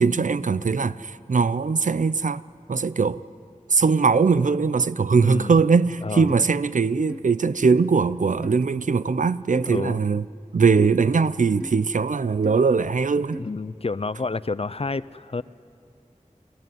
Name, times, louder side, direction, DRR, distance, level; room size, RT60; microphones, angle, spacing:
voice 1, 0.0-2.4 2.7-3.2 3.7-10.2 10.5-13.4, right 5 dB, 75° right, 0.5 m, -21 dB
voice 2, 5.2-5.6 6.0-6.4 9.6-10.0 13.4-15.4, left 3 dB, 50° left, 0.5 m, -29 dB
sound 1, 6.3-6.5 7.1-7.2 7.8-7.9 8.4-8.6 9.6-9.8 10.8-10.9 11.6-11.8 12.4-12.6 13.3-13.5, equal, 5° right, 0.5 m, -36 dB
28.5 x 15.0 x 9.3 m
wide cardioid pair, 45°, 13 cm